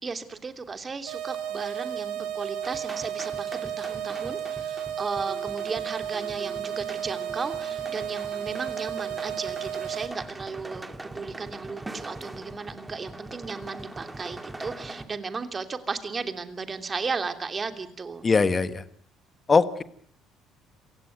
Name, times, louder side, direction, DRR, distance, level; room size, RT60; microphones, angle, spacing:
voice 1, 0.0-18.3, right 4 dB, 30° right, 8 dB, 2.9 m, -35 dB
sound 1, 1.1-10.1, right 10 dB, 90° right, 4.9 m, -33 dB
sound 2, 2.6-15.1, right 2 dB, 15° right, 2.3 m, -42 dB
voice 2, 18.2-18.8 19.5-19.8, left 4 dB, 30° left, 13 dB, 1.4 m, -21 dB
27.5 x 16.5 x 9.4 m, 0.63 s
cardioid pair, 100°, 0 cm